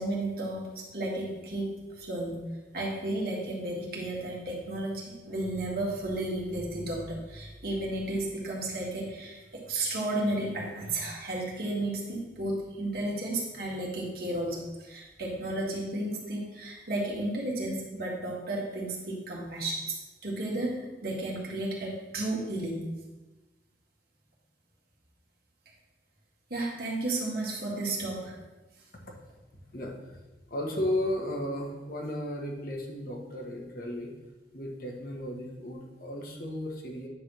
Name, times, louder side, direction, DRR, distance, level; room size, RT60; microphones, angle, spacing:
voice 1, 0.0-2.4 2.7-19.9 20.2-22.8 26.5-28.4, right 1 dB, 55° right, -3 dB, 2.0 m, -33 dB
voice 2, 29.7-30.2 30.5-34.1 34.5-37.1, left 1 dB, 55° left, 0 dB, 1.4 m, -34 dB
9.6 x 3.5 x 6.3 m, 1.1 s
head